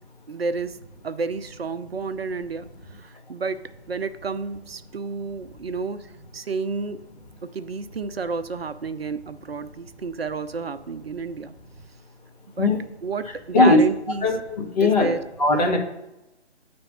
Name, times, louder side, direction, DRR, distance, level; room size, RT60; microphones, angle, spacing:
voice 1, 0.3-0.8 1.0-3.6 3.9-7.0 7.5-11.5 12.6-12.7 13.0-14.3 14.8-15.2, right 4 dB, 60° right, 11 dB, 0.5 m, -30 dB
voice 2, 14.2-15.1 15.4-15.8, left 3 dB, 35° left, 1 dB, 1.3 m, -18 dB
7.9 x 3.4 x 5.4 m, 0.94 s
figure-of-eight pair, 145°, 34 cm